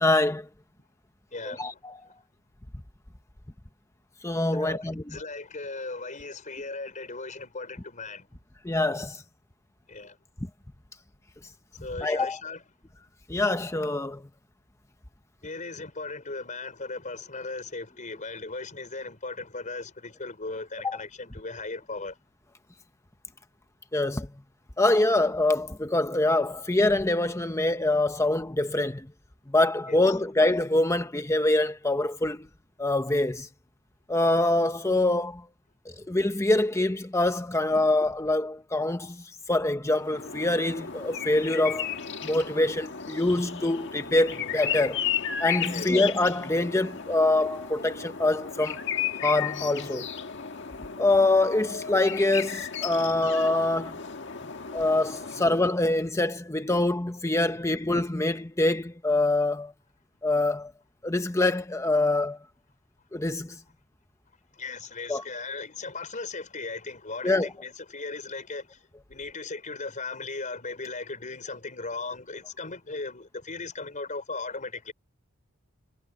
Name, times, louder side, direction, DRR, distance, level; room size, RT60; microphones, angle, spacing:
voice 1, 0.0-0.5 1.4-2.0 4.2-5.2 8.6-9.2 12.0-12.4 13.3-14.2 20.8-21.0 23.9-24.3 24.8-29.1 29.5-32.5 32.8-33.5 34.1-35.4 36.1-39.2 39.5-41.9 42.2-45.0 45.4-48.8 49.2-50.1 51.0-53.9 54.7-59.7 60.2-60.7 61.0-62.4 63.1-63.6 65.1-65.2 67.2-67.5, left 2 dB, 15° left, 0.9 m, -25 dB
voice 2, 1.3-1.8 4.6-8.3 9.9-10.1 11.8-12.6 15.4-22.1 29.9-30.0 45.7-45.9 53.2-53.3 54.4-54.5 64.6-68.8 69.1-74.9, left 3 dB, 35° left, 4.7 m, -37 dB
sound 1, 39.9-55.8, left 8 dB, 55° left, 1.6 m, -34 dB
head